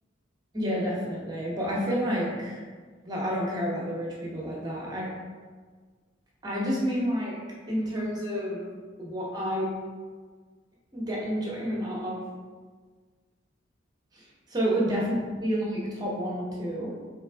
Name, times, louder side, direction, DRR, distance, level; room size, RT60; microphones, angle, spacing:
voice 1, 0.5-2.6 3.0-5.1 6.4-7.4 7.7-8.7 9.0-9.7 10.9-12.2 14.5-15.0 15.4-16.9, equal, 20° right, -4 dB, 0.9 m, -29 dB
3.9 x 3.3 x 3.4 m, 1.5 s
head